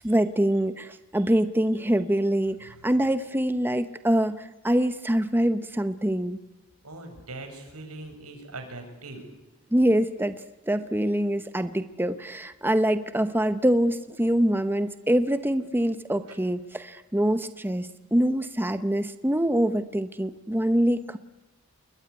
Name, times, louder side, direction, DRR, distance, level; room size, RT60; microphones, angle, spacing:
voice 1, 0.0-6.4 9.7-10.4 10.7-21.2, right 1 dB, 10° right, 11 dB, 0.9 m, -24 dB
voice 2, 6.8-9.2 16.3-16.4, right 2 dB, 85° right, 5 dB, 7.2 m, -41 dB
28.0 x 22.0 x 9.7 m, 1.1 s
head